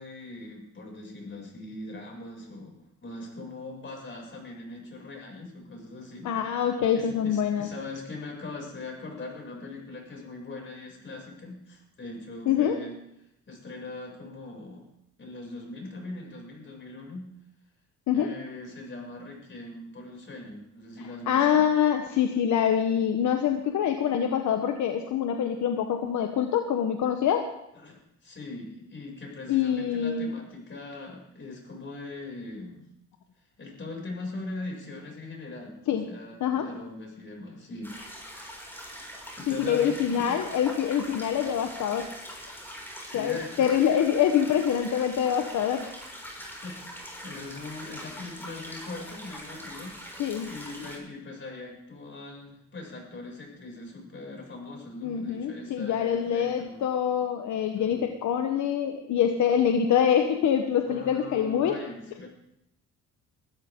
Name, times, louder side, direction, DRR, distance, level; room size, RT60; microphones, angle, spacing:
voice 1, 0.0-6.3 6.9-12.9 13.5-14.9 15.2-17.3 18.1-21.6 27.7-32.8 33.6-35.8 36.1-37.9 39.4-40.4 43.0-43.7 46.6-49.9 50.5-56.8 57.8-58.1 60.9-62.3, left 2 dB, 40° left, 0 dB, 6.6 m, -41 dB
voice 2, 6.2-7.7 12.5-12.8 18.1-18.3 21.3-27.5 29.5-30.3 35.9-36.0 36.4-36.7 39.5-42.1 43.1-45.9 50.2-50.5 55.0-61.8, left 8 dB, 70° left, 5 dB, 1.2 m, -25 dB
sound 1, 37.8-51.0, equal, 5° left, 6.0 m, -43 dB
21.0 x 13.0 x 3.8 m, 0.83 s
cardioid pair, 90°, 30 cm